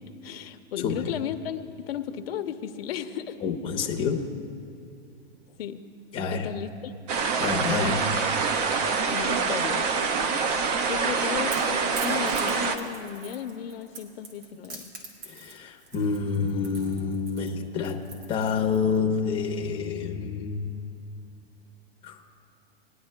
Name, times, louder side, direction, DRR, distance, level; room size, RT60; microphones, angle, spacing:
voice 1, 0.2-3.4 5.6-5.8 6.3-7.0 9.1-9.8 10.9-14.9, left 9 dB, 65° left, 9 dB, 0.7 m, -35 dB
voice 2, 3.4-4.3 6.1-6.5 7.4-8.1 15.3-20.7 22.0-22.2, left 5 dB, 15° left, 2 dB, 0.7 m, -28 dB
sound 1, 7.1-12.8, right 5 dB, 40° right, 0.7 m, -25 dB
Crackle / Crack, 10.8-19.0, right 3 dB, 55° right, 2.5 m, -43 dB
21.0 x 10.5 x 2.2 m, 2.8 s
hypercardioid pair, 145°, 32 cm